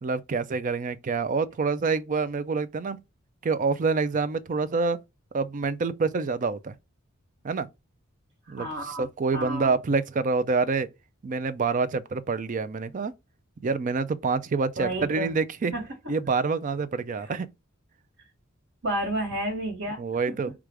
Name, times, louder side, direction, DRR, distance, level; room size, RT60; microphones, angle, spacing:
voice 1, 0.0-3.0 3.4-5.0 5.3-6.7 7.4-7.7 8.5-10.9 11.2-13.1 13.6-15.7 16.1-17.5 20.0-20.5, right 4 dB, 40° right, 0.4 m, -27 dB
voice 2, 8.5-9.1 9.3-9.7 14.8-15.4 15.7-15.8 17.2-17.3 18.8-20.0, right 1 dB, 75° right, 1.5 m, -31 dB
4.8 x 2.4 x 4.6 m
head